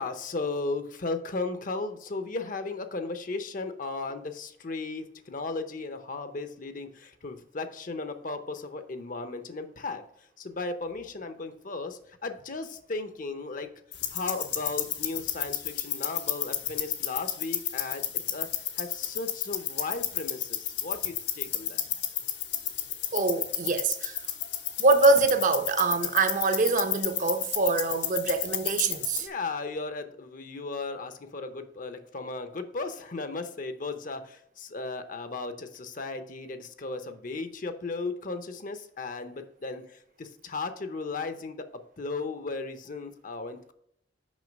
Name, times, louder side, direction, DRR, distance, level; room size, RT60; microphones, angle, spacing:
voice 1, 0.0-10.0 10.4-13.7 14.1-18.0 18.3-18.5 18.8-21.8 29.2-41.6 42.0-43.7, left 3 dB, 50° left, 0.7 m, -35 dB
sound 1, 13.9-29.2, left 11 dB, 75° left, 1.0 m, -32 dB
voice 2, 23.1-24.2 24.8-29.3, right 3 dB, 45° right, 0.7 m, -24 dB
6.3 x 5.4 x 5.2 m
head